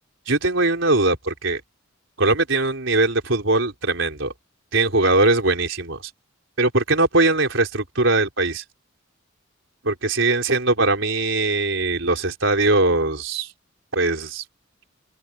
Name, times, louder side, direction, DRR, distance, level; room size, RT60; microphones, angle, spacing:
voice 1, 0.3-1.6 2.2-4.3 4.7-6.0 6.6-8.6 9.8-13.5 13.9-14.4, right 2 dB, 70° right, 4.5 m, -21 dB
open air
head